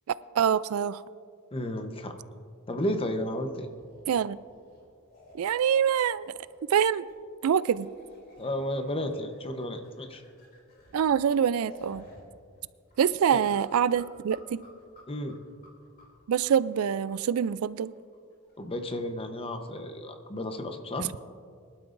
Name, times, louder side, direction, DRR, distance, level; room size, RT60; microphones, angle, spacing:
voice 1, 0.3-1.0 4.1-4.4 5.3-6.3 6.7-7.0 7.4-7.9 10.9-12.1 13.0-14.6 16.3-17.9 21.0-21.1, right 8 dB, 80° right, 18 dB, 0.4 m, -25 dB
voice 2, 1.5-2.2 2.7-3.7 8.4-10.2 13.3-13.4 15.1-15.4 18.6-21.1, left 1 dB, 25° left, 6 dB, 0.9 m, -33 dB
sound 1, 3.6-6.7 7.1-7.2 7.5-12.2 12.5-12.6 12.9-19.4, left 1 dB, 45° left, 3.0 m, -54 dB
23.0 x 12.0 x 2.6 m, 2.2 s
head